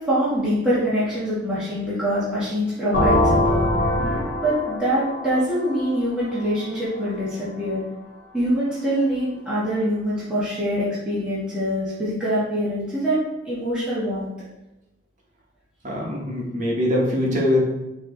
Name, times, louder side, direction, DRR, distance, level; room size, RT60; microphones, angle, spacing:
voice 1, 0.0-3.9 4.4-7.8 8.3-14.2, equal, 5° right, -12 dB, 1.2 m, -24 dB
sound 1, 2.9-6.7, left 1 dB, 70° left, 0.9 m, -23 dB
voice 2, 15.8-17.6, left 1 dB, 45° right, -3 dB, 1.1 m, -22 dB
4.7 x 2.9 x 3.7 m, 0.98 s
head